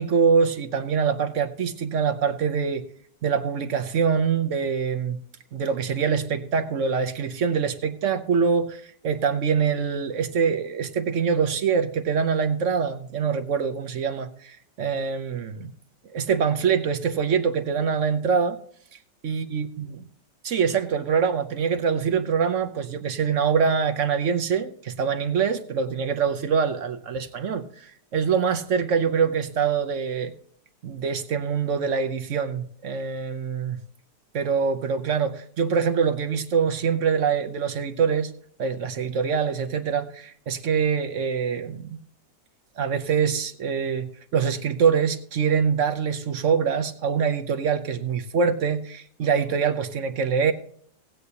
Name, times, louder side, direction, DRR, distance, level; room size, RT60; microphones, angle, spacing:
voice 1, 0.0-2.8 3.2-5.2 5.5-15.7 16.1-18.6 19.2-19.9 20.4-30.3 30.8-33.8 34.3-38.3 38.6-42.0 42.8-50.5, right 6 dB, 55° right, 0.9 m, -24 dB
18.5 x 8.1 x 2.8 m
omnidirectional pair, 1.9 m